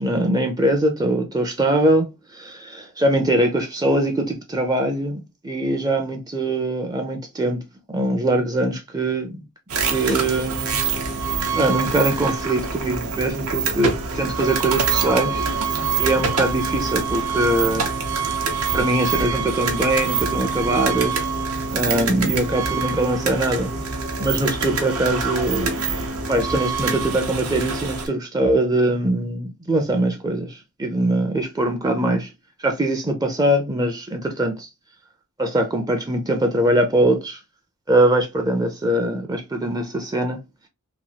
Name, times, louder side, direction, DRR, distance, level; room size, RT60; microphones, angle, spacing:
voice 1, 0.0-2.1 2.3-7.6 7.9-9.4 9.9-10.8 11.6-15.5 16.0-17.8 18.7-21.3 21.7-23.7 24.2-25.7 26.3-32.3 32.6-34.7 35.4-37.4 37.9-40.4, right 1 dB, 15° right, 0.4 m, -22 dB
sound 1, 9.7-28.1, right 5 dB, 70° right, 0.7 m, -25 dB
2.9 x 2.3 x 2.7 m
head